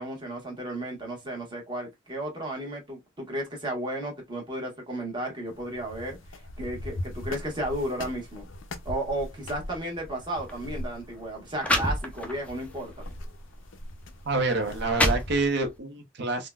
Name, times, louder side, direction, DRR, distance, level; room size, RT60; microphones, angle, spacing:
voice 1, 0.0-8.5 8.8-13.0, right 1 dB, 25° right, 1.1 m, -34 dB
sound 1, 5.5-15.5, left 1 dB, 75° left, 0.5 m, -41 dB
sound 2, 10.4-10.6 11.3-11.4 11.6-12.5 13.1-13.3 14.0-14.1 14.6-15.8, left 1 dB, 5° left, 0.4 m, -27 dB
voice 2, 14.2-16.5, right 3 dB, 60° right, 0.8 m, -27 dB
3.6 x 2.2 x 2.3 m
head